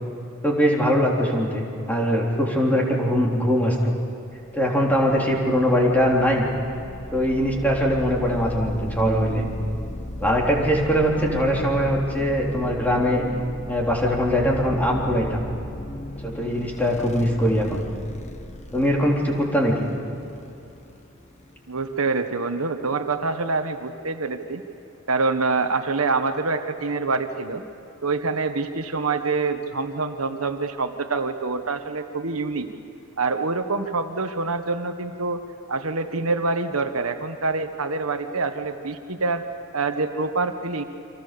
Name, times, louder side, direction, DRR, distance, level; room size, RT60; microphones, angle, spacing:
voice 1, 0.4-3.9 4.5-6.5 7.1-9.5 10.2-13.2 13.7-15.4 16.2-17.8 18.7-19.9, equal, 10° left, -2 dB, 3.8 m, -21 dB
sound 1, 6.2-21.9, left 1 dB, 35° left, 1.0 m, -36 dB
voice 2, 21.7-24.6 25.1-27.6 28.0-32.7 33.2-35.4 35.7-39.4 39.7-40.8, right 3 dB, 85° right, 7 dB, 1.4 m, -26 dB
29.5 x 25.0 x 6.9 m, 2.7 s
head